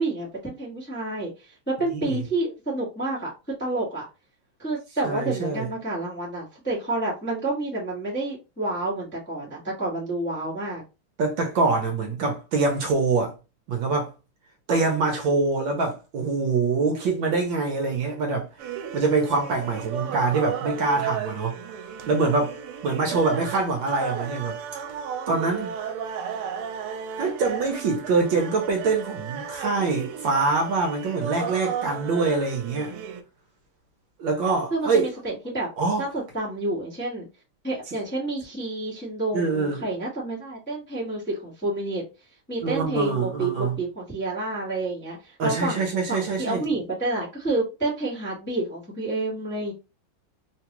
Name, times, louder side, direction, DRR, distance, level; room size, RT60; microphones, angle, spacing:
voice 1, 0.0-3.3 3.6-4.0 4.6-10.8 34.7-35.7 36.0-37.2 37.6-42.0 42.5-49.7, right 2 dB, 10° left, 0.8 m, -29 dB
voice 2, 1.9-2.2 5.0-5.7 11.2-13.3 13.7-14.1 14.7-21.6 22.1-22.6 22.8-24.6 25.3-25.7 27.2-32.9 34.2-35.1 35.8-36.0 39.3-39.8 42.6-43.8 45.4-46.7, right 4 dB, 70° right, 1.3 m, -24 dB
sound 1, 18.6-33.2, right 7 dB, 85° right, 1.5 m, -34 dB
3.8 x 2.3 x 2.9 m
omnidirectional pair, 2.4 m